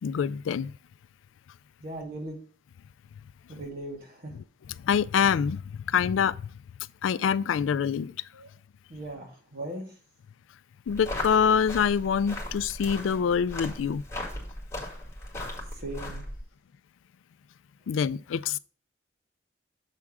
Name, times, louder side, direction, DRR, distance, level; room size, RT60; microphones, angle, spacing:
voice 1, 0.0-0.7 4.8-6.4 7.0-8.1 10.9-14.0 17.9-18.6, left 7 dB, 85° left, 0.3 m, -25 dB
voice 2, 1.8-2.4 3.5-4.4 8.3-8.5 8.9-10.0 15.7-16.3, right 1 dB, 55° right, 2.1 m, -38 dB
sound 1, 10.9-16.4, left 1 dB, 15° left, 2.0 m, -37 dB
7.5 x 3.6 x 5.9 m
head